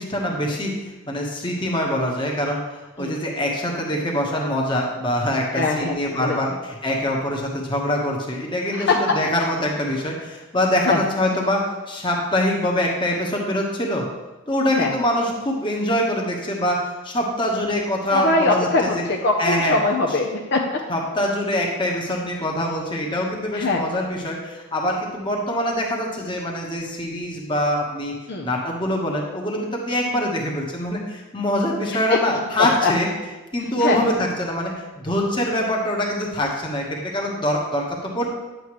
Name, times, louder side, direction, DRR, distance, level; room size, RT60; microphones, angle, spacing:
voice 1, 0.0-14.1 14.5-19.0 19.4-19.8 20.9-28.1 28.4-33.1 33.5-38.3, left 1 dB, 25° left, -1 dB, 1.3 m, -24 dB
voice 2, 5.5-6.4 8.7-8.9 10.9-11.0 14.8-14.9 18.1-20.6 23.5-23.8 28.3-28.5 32.6-32.9 33.8-34.0, left 3 dB, 50° left, 0 dB, 0.8 m, -21 dB
10.0 x 7.9 x 3.2 m, 1.1 s
head